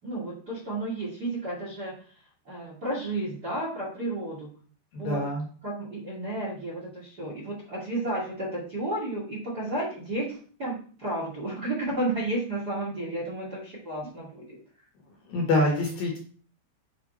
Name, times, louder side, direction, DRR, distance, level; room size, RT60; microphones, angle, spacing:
voice 1, 0.0-4.5 5.0-5.2 5.6-14.6, right 1 dB, 35° right, -4 dB, 1.7 m, -32 dB
voice 2, 4.9-5.4 15.3-16.2, left 2 dB, 65° left, -1 dB, 2.8 m, -25 dB
8.6 x 3.5 x 4.2 m, 0.43 s
omnidirectional pair, 5.2 m